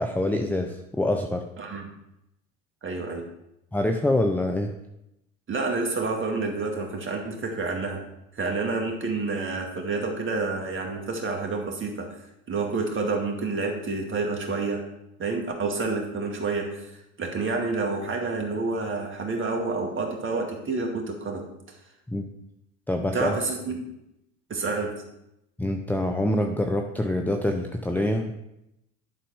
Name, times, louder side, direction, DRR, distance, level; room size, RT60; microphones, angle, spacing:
voice 1, 0.0-1.4 3.7-4.7 22.1-22.3 22.9-23.4 25.6-28.3, left 1 dB, 5° left, 3 dB, 0.7 m, -25 dB
voice 2, 1.6-1.9 2.8-3.3 5.5-8.0 8.3-12.2 12.5-14.8 15.2-16.9 17.2-21.5 23.1-23.9 24.5-25.0, right 3 dB, 30° right, 2 dB, 2.2 m, -29 dB
11.5 x 4.1 x 5.5 m, 0.85 s
hypercardioid pair, 80°, 41 cm